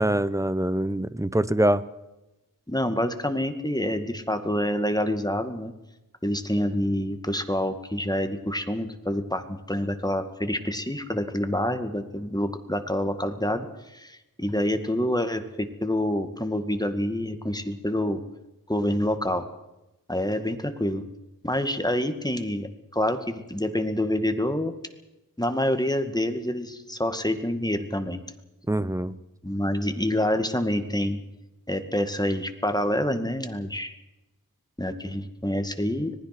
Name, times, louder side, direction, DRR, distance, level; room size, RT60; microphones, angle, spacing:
voice 1, 0.0-1.8 28.7-29.1, right 1 dB, 10° right, 15 dB, 0.9 m, -24 dB
voice 2, 2.7-5.7 6.2-13.7 13.9-18.2 18.7-19.4 20.1-21.0 21.4-24.7 25.4-28.2 29.4-31.2 31.7-33.9 34.8-36.2, left 1 dB, 10° left, 7 dB, 2.1 m, -27 dB
25.5 x 19.5 x 6.1 m, 0.97 s
wide cardioid pair, 60°, 36 cm